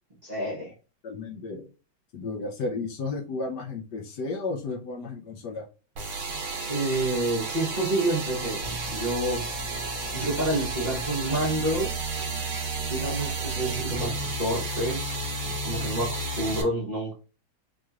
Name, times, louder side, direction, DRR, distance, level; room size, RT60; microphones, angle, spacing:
voice 1, 0.2-0.7 6.7-8.6 8.9-9.4 10.1-11.9 12.9-15.0 15.4-17.1, right 1 dB, 35° right, -5 dB, 0.8 m, -28 dB
voice 2, 1.0-1.7 2.1-5.6, left 3 dB, 65° left, 1 dB, 1.2 m, -33 dB
sound 1, 6.0-16.6, right 2 dB, 50° right, 1.5 m, -32 dB
4.8 x 3.0 x 2.4 m, 0.34 s
omnidirectional pair, 2.1 m